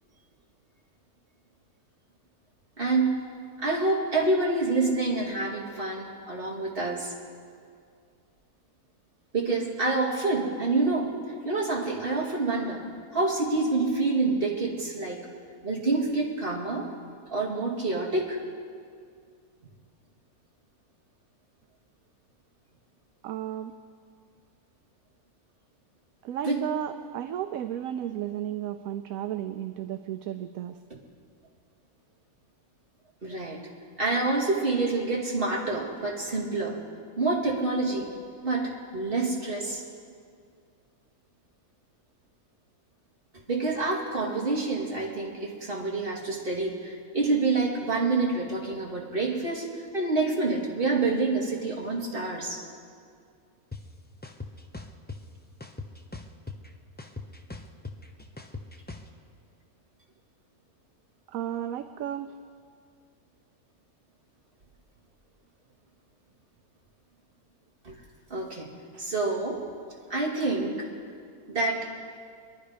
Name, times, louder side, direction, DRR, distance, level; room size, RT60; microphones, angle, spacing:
voice 1, 2.8-3.3 3.6-7.1 9.3-11.1 11.4-12.8 13.1-15.2 15.6-16.9 17.3-18.4 26.4-26.6 33.2-33.6 34.0-36.8 37.2-38.1 38.4-39.8 43.5-52.6 67.8-67.9 68.3-69.6 70.1-70.8 71.5-71.9, right 3 dB, 35° right, -3 dB, 2.6 m, -27 dB
voice 2, 23.2-23.7 26.2-30.8 61.3-62.4, right 11 dB, 70° right, 10 dB, 1.0 m, -33 dB
sound 1, 53.7-53.8 54.2-55.2 55.6-56.7 57.0-59.1, left 3 dB, 15° left, 0.4 m, -39 dB
24.5 x 11.0 x 5.1 m, 2.2 s
omnidirectional pair, 1.6 m